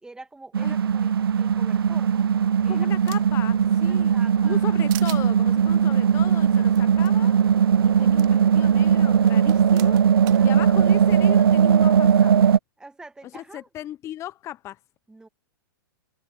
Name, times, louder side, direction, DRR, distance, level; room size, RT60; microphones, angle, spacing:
voice 1, 0.0-2.3 2.6-2.9 3.9-4.8 10.4-10.8 12.8-13.7 15.1-15.3, right 2 dB, 5° right, 2.0 m, -45 dB
sound 1, 0.5-12.6, right 8 dB, 85° right, 0.5 m, -19 dB
sound 2, 2.1-3.5 3.9-4.6 4.9-5.2 6.7-6.8 7.0-7.1 8.2-8.3 9.3-10.4, right 18 dB, 35° right, 1.3 m, -41 dB
voice 2, 2.7-7.4 7.8-10.0 10.4-12.3 13.3-14.8, left 13 dB, 25° left, 0.6 m, -37 dB
hypercardioid pair, 120°, 12 cm